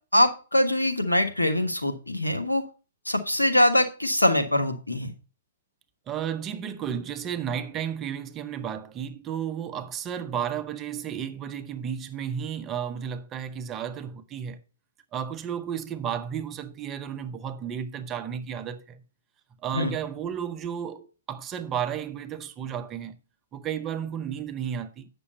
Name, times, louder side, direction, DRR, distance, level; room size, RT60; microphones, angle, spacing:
voice 1, 0.1-2.6 3.0-5.1 19.7-19.9, left 1 dB, 90° left, 1.4 m, -23 dB
voice 2, 6.1-14.6 15.1-19.0 19.6-23.2 23.5-25.1, right 8 dB, 20° right, 0.8 m, -33 dB
8.4 x 6.1 x 5.3 m
figure-of-eight pair, 115°, 0 cm